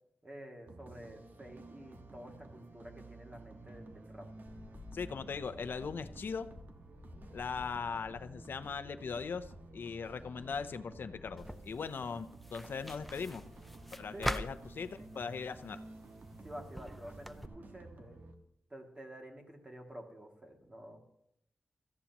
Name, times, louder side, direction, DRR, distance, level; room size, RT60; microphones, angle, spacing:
voice 1, 0.2-4.3 14.1-14.5 16.4-18.2 18.7-21.0, equal, 25° right, 1 dB, 2.5 m, -50 dB
sound 1, 0.7-18.3, right 2 dB, 55° right, 1.5 m, -53 dB
sound 2, 4.5-14.7, left 3 dB, 50° left, 1.4 m, -56 dB
voice 2, 4.9-6.5 7.3-13.4 14.0-15.8, left 5 dB, 70° left, 11 dB, 0.7 m, -39 dB
sound 3, 11.4-17.5, equal, ahead, 0.6 m, -44 dB
17.5 x 14.0 x 3.0 m, 0.78 s
wide cardioid pair, 85°, 4 cm